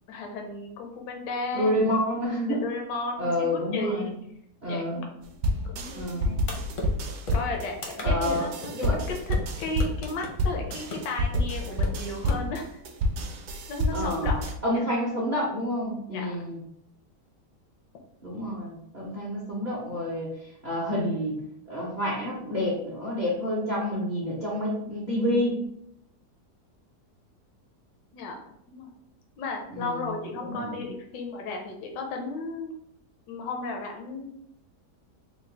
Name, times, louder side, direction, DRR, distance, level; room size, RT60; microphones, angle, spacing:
voice 1, 0.1-1.8 2.5-4.1 4.7-5.2 5.6-6.5 7.3-8.7 9.0-12.8 13.7-14.8 16.1-16.4 28.1-28.4 28.7-28.9 29.4-32.7 33.3-34.3, left 3 dB, 85° left, 2 dB, 1.2 m, -34 dB
voice 2, 1.5-2.7 3.2-4.1 4.6-5.0 5.9-6.3 8.0-8.5 8.7-9.0 13.9-14.3 14.6-16.6 18.2-20.3 20.6-21.4 21.7-25.6 29.7-30.1 30.4-30.9, left 1 dB, 45° right, -6 dB, 0.5 m, -28 dB
sound 1, 5.4-14.5, left 1 dB, 70° right, 1.0 m, -28 dB
sound 2, 6.5-12.4, left 2 dB, 60° left, 0.5 m, -37 dB
3.7 x 2.2 x 3.2 m, 0.74 s
omnidirectional pair, 1.8 m